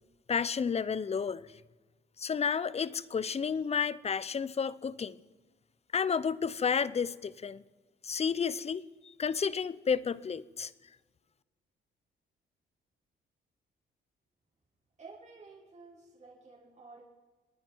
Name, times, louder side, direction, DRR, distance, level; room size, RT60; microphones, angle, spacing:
voice 1, 0.3-1.5 2.2-5.2 5.9-7.6 8.0-10.7, left 6 dB, 30° left, 0.7 m, -31 dB
voice 2, 15.0-17.0, right 4 dB, 35° right, 5.6 m, -52 dB
30.0 x 10.5 x 4.6 m
cardioid pair, 90°, 20 cm